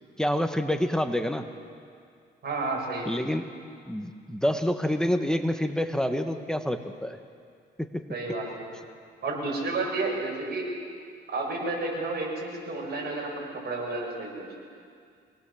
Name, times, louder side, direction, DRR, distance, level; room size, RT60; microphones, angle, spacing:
voice 1, 0.2-1.4 3.1-3.5 3.9-7.2 7.8-8.0, equal, 5° left, 7 dB, 1.3 m, -27 dB
voice 2, 2.4-3.1 8.1-8.7 9.2-10.7 11.3-14.5, right 3 dB, 55° right, -2 dB, 7.7 m, -31 dB
24.5 x 19.5 x 7.3 m, 2.2 s
cardioid pair, 90°, 20 cm